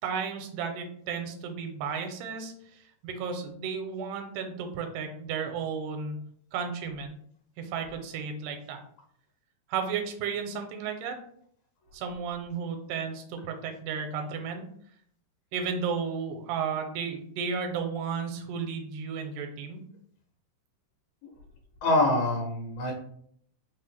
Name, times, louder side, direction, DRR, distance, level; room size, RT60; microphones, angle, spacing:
voice 1, 0.0-6.2 6.5-7.2 7.6-8.8 9.7-11.2 11.9-14.6 15.5-19.8, right 6 dB, 80° right, 5 dB, 2.2 m, -33 dB
voice 2, 21.8-22.9, left 2 dB, 80° left, -2 dB, 2.5 m, -25 dB
5.3 x 2.0 x 3.3 m, 0.64 s
omnidirectional pair, 3.9 m